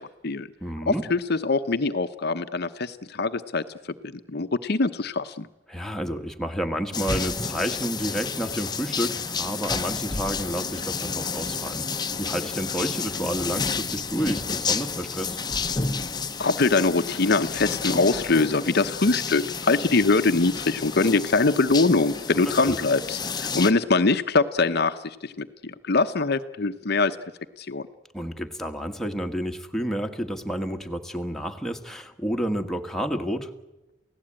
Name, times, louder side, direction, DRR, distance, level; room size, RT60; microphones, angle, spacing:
voice 1, 0.0-0.5 0.9-3.6 4.0-5.5 16.4-27.2 27.6-27.9, left 3 dB, 60° left, 9 dB, 0.9 m, -23 dB
voice 2, 0.6-1.0 5.7-11.9 12.2-15.4 22.5-22.8 28.1-33.5, equal, ahead, 3 dB, 1.6 m, -30 dB
sound 1, 6.9-23.7, left 5 dB, 20° left, 0.9 m, -30 dB
28.5 x 17.0 x 8.9 m, 1.0 s
head